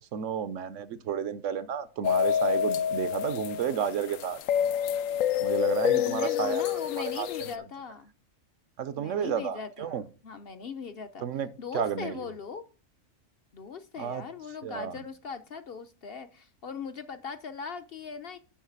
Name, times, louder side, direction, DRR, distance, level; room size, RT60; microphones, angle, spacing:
voice 1, 0.1-4.4 5.4-6.6 7.0-7.3 8.8-10.0 11.2-11.5 11.7-12.2 14.0-14.2 14.6-15.0, right 8 dB, 70° right, 1.0 m, -31 dB
sound 1, 2.0-7.6, left 9 dB, 80° left, 1.0 m, -28 dB
voice 2, 5.9-8.1 9.0-11.3 11.6-12.6 13.5-18.4, left 6 dB, 50° left, 0.8 m, -39 dB
7.3 x 5.8 x 7.0 m
omnidirectional pair, 1.4 m